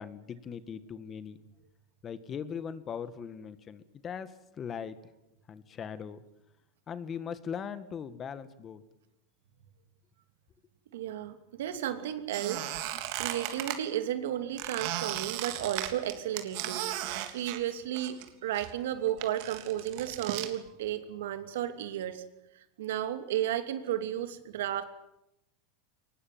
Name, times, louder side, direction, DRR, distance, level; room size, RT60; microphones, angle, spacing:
voice 1, 0.0-1.4 2.0-5.0 5.5-6.2 6.9-8.8, left 7 dB, 30° left, 13 dB, 1.8 m, -40 dB
voice 2, 10.9-12.7 13.2-17.0 17.3-22.2 22.5-24.8, right 11 dB, 85° right, 9 dB, 2.8 m, -33 dB
Squeak, 12.3-13.8 14.6-18.3 18.5-20.5, right 13 dB, 65° right, 3.3 m, -36 dB
23.0 x 20.5 x 9.4 m, 0.86 s
supercardioid pair, 135°, 0 cm